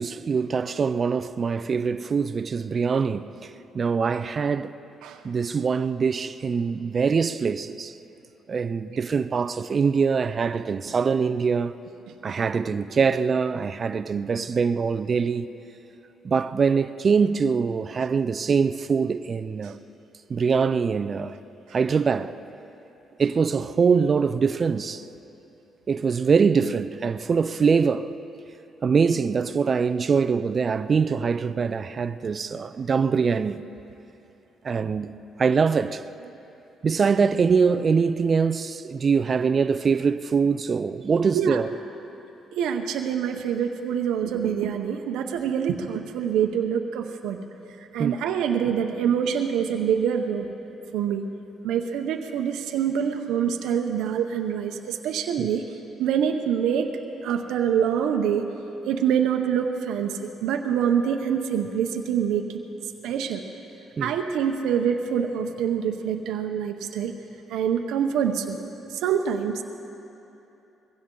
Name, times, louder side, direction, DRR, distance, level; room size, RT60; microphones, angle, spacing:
voice 1, 0.0-4.7 5.2-7.9 8.5-11.7 12.2-15.5 16.2-19.8 20.3-21.4 21.7-22.4 23.2-25.0 25.9-28.1 28.8-33.6 34.6-35.1 35.4-36.0 36.8-41.7 48.0-48.2 55.4-55.5 64.0-64.1, right 5 dB, 40° right, 0.5 m, -23 dB
voice 2, 42.5-47.4 47.9-50.5 50.9-51.3 51.6-55.7 56.0-56.9 57.2-58.5 58.9-62.6 63.0-63.4 64.0-67.1 67.5-68.6 68.9-69.6, right 8 dB, 90° right, 0.8 m, -25 dB
22.5 x 16.0 x 3.9 m
cardioid pair, 90°, 0 cm